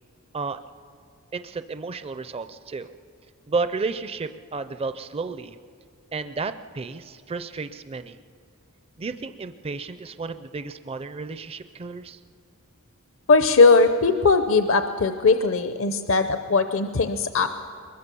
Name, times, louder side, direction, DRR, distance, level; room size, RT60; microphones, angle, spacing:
voice 1, 1.3-2.9 3.5-5.6 6.1-8.2 9.0-12.2, right 4 dB, 25° right, 11 dB, 0.4 m, -32 dB
voice 2, 13.3-17.5, left 4 dB, 65° left, 8 dB, 0.7 m, -19 dB
22.5 x 21.0 x 6.9 m, 2.3 s
head